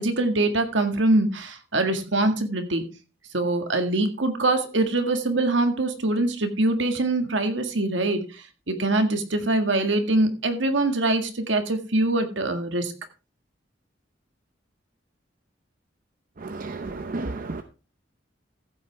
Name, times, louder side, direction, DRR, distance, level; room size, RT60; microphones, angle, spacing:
voice 1, 0.0-2.8 3.3-12.9, right 2 dB, 75° right, 1.8 m, -23 dB
voice 2, 16.4-17.6, right 3 dB, 50° right, 0.7 m, -32 dB
14.5 x 8.3 x 3.5 m
head